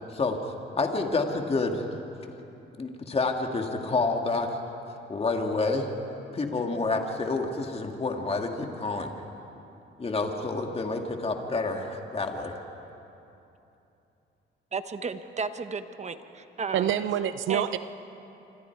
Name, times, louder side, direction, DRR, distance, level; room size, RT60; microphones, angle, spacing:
voice 1, 0.1-1.8 2.8-4.5 5.1-5.9 6.3-9.1 10.0-12.5, left 3 dB, 30° left, 3 dB, 2.2 m, -28 dB
voice 2, 14.7-16.9 17.5-17.8, right 4 dB, 35° right, 9 dB, 1.2 m, -34 dB
voice 3, 16.7-17.8, right 10 dB, 75° right, 12 dB, 0.7 m, -26 dB
27.0 x 25.5 x 4.7 m, 2.9 s
cardioid pair, 90°, 20 cm